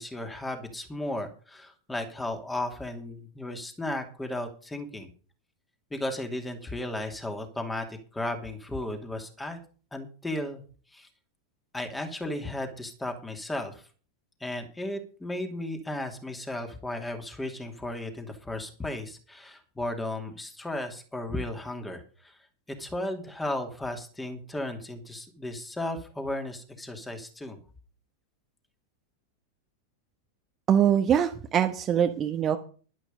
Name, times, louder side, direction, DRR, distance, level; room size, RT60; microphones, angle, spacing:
voice 1, 0.0-5.1 5.9-9.6 9.9-10.6 10.9-11.1 11.7-13.8 14.4-22.4 22.8-27.6, left 1 dB, 10° left, 5 dB, 2.7 m, -35 dB
voice 2, 30.7-32.6, right 9 dB, 25° right, 7 dB, 1.1 m, -23 dB
11.5 x 11.0 x 5.3 m, 0.40 s
figure-of-eight pair, 90°, 0 cm